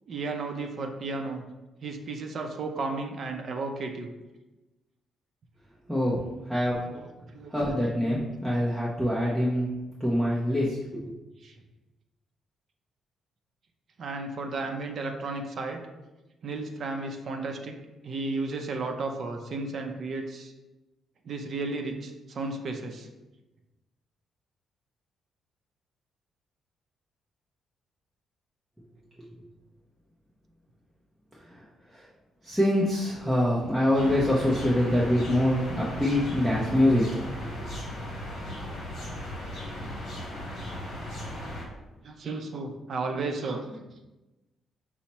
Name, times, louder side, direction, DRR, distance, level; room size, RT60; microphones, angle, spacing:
voice 1, 0.1-1.4 1.8-4.1 6.9-7.9 11.4-11.6 14.0-15.8 16.4-17.8 18.0-20.5 21.2-23.1 42.0-43.9, right 3 dB, 45° right, 3 dB, 0.5 m, -34 dB
voice 2, 6.5-6.8 7.5-9.7 10.0-11.0 32.4-37.0 37.4-37.5, left 1 dB, ahead, -7 dB, 0.6 m, -24 dB
sound 1, 33.9-41.7, left 1 dB, 45° left, 1.2 m, -37 dB
5.7 x 2.1 x 4.2 m, 1.1 s
cardioid pair, 140°, 0 cm